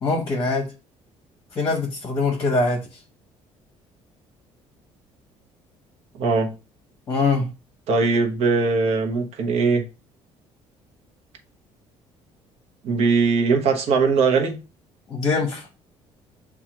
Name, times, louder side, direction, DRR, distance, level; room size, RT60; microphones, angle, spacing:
voice 1, 0.0-0.7 1.5-2.8 7.1-7.4 15.1-15.7, left 3 dB, 25° left, 0.8 m, -23 dB
voice 2, 6.2-6.5 7.9-9.8 12.8-14.6, right 4 dB, 65° right, 0.9 m, -20 dB
7.0 x 2.3 x 2.9 m
cardioid pair, 165°, 12 cm